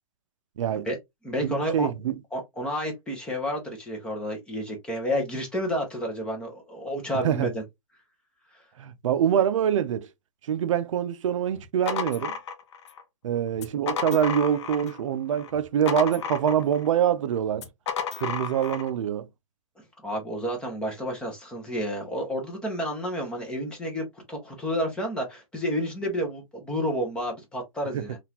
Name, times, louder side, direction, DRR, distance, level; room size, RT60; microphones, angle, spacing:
voice 1, 0.6-0.9 1.4-2.2 7.2-7.5 8.8-10.1 10.5-12.3 13.2-17.7 18.2-19.3 27.9-28.1, right 9 dB, 55° right, 0.5 m, -25 dB
voice 2, 1.2-1.9 2.3-7.6 20.0-28.2, equal, 5° left, 0.7 m, -30 dB
sound 1, 11.5-13.0 13.5-15.0 15.3-16.9 17.5-18.9, left 7 dB, 45° left, 0.7 m, -33 dB
3.8 x 2.4 x 2.8 m
hypercardioid pair, 165°, 19 cm